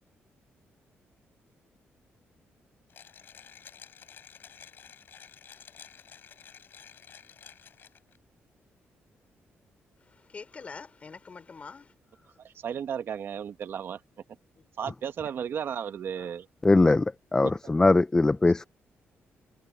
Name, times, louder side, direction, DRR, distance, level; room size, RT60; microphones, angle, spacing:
Mechanisms, 2.9-8.2, left 8 dB, 55° left, 5.8 m, -51 dB
voice 1, 10.0-11.9 16.2-16.3, left 5 dB, 30° left, 3.6 m, -45 dB
voice 2, 12.4-14.0 14.8-16.5 17.4-17.5, right 8 dB, 60° right, 1.2 m, -34 dB
voice 3, 16.6-18.7, left 2 dB, 15° left, 0.5 m, -21 dB
cardioid pair, 150°, 4 cm